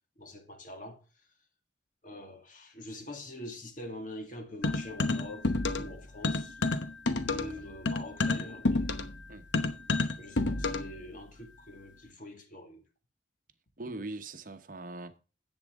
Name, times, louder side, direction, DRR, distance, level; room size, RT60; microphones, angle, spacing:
voice 1, 0.2-1.0 2.0-6.6 7.3-8.8 10.2-12.8, left 1 dB, 45° left, 2.0 m, -44 dB
sound 1, 4.6-6.0 6.2-11.0, left 3 dB, 75° left, 1.0 m, -29 dB
voice 2, 7.3-7.7 9.3-9.5 13.8-15.2, right 2 dB, 45° right, 0.9 m, -42 dB
11.0 x 8.1 x 3.6 m
head